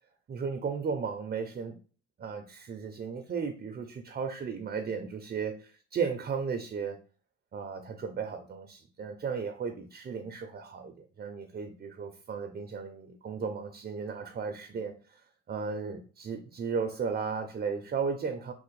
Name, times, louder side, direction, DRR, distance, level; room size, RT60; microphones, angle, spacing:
voice 1, 0.3-1.8 2.2-7.0 7.5-15.2 15.5-18.5, right 5 dB, 30° right, 0.4 m, -35 dB
3.2 x 2.0 x 3.1 m
cardioid pair, 90°, 30 cm